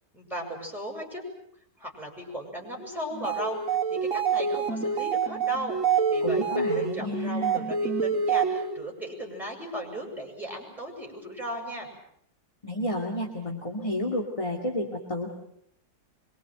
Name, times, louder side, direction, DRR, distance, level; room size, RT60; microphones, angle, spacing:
voice 1, 0.1-1.2 1.8-11.9, equal, ahead, 0 dB, 7.6 m, -37 dB
sound 1, 3.1-8.9, right 5 dB, 50° right, 2.7 m, -27 dB
voice 2, 6.2-7.6 12.6-15.3, left 1 dB, 20° left, 1 dB, 2.6 m, -31 dB
25.0 x 24.0 x 7.9 m, 0.71 s
omnidirectional pair, 1.9 m